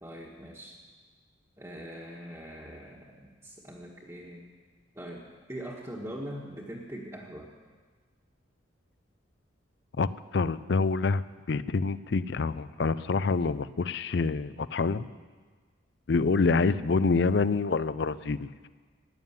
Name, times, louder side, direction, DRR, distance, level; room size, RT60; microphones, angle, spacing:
voice 1, 0.0-0.8 1.6-4.5 4.9-7.5, equal, 15° right, -4 dB, 1.3 m, -42 dB
voice 2, 10.0-15.1 16.1-18.7, left 4 dB, 60° left, 16 dB, 0.4 m, -27 dB
14.5 x 9.2 x 9.3 m, 1.5 s
head